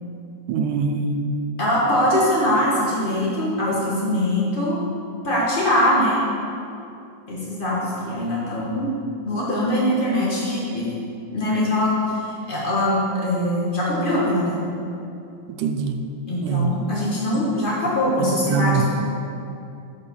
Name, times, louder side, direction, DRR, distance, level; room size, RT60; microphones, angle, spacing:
voice 1, 0.5-1.2 15.5-16.0 16.4-16.7 18.4-18.8, right 6 dB, 80° right, 7 dB, 2.1 m, -23 dB
voice 2, 1.6-4.8 5.2-6.2 7.3-8.9 9.2-10.9 11.3-14.6 16.3-18.8, left 1 dB, 60° left, -6 dB, 0.5 m, -22 dB
10.5 x 5.8 x 6.8 m, 2.6 s
omnidirectional pair, 3.7 m